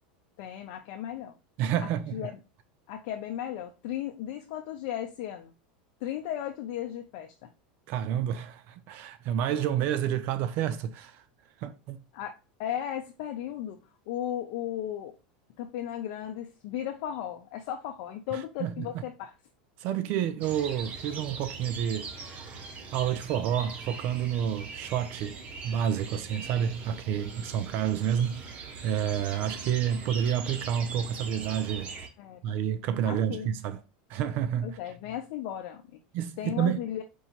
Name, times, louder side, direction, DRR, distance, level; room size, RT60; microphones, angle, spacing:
voice 1, 0.4-1.3 1.8-2.3 2.9-5.5 6.0-7.5 12.1-13.8 14.1-15.1 15.6-19.3 32.2-32.5 33.0-33.5 34.6-35.8 36.4-37.0, left 11 dB, 60° left, 0.6 m, -35 dB
voice 2, 1.6-2.3 7.9-11.2 11.6-12.0 18.3-19.0 19.8-22.1 22.9-31.9 32.4-33.8 34.1-34.8 36.1-36.8, right 9 dB, 50° right, 0.4 m, -29 dB
sound 1, 20.4-32.1, right 4 dB, 35° right, 0.8 m, -41 dB
4.6 x 2.8 x 4.0 m
supercardioid pair, 135°, 4 cm